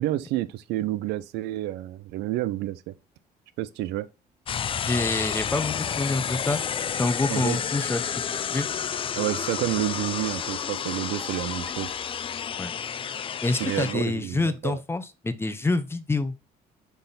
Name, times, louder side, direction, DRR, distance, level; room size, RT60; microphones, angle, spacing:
voice 1, 0.0-2.9 3.6-4.1 7.3-7.6 9.2-11.9 13.6-14.8, right 15 dB, 85° right, 0.6 m, -29 dB
sound 1, 4.5-13.9, left 8 dB, 30° left, 0.4 m, -30 dB
voice 2, 4.8-6.6 7.0-8.0 8.5-8.7 12.6-12.7 13.4-16.4, left 3 dB, 15° left, 0.8 m, -27 dB
5.9 x 3.5 x 5.6 m
cardioid pair, 110°, 17 cm